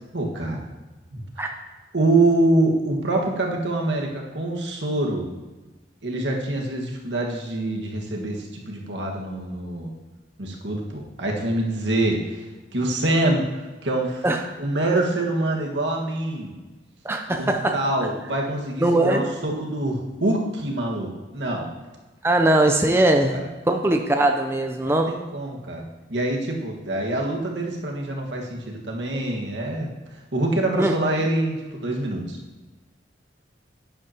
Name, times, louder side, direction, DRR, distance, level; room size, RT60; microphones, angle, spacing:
voice 1, 0.1-0.7 1.1-1.5 1.9-5.3 6.0-9.9 10.4-12.2 12.7-13.4 13.8-14.2 14.6-16.5 17.3-21.7 23.0-23.1 24.8-25.8 26.1-29.9 30.3-32.4, right 2 dB, 80° right, 0 dB, 1.7 m, -25 dB
voice 2, 17.0-17.8 18.8-19.2 22.2-23.4 23.7-25.1 30.8-30.9, right 1 dB, 15° right, 4 dB, 0.5 m, -20 dB
10.5 x 9.9 x 2.9 m, 1.2 s
head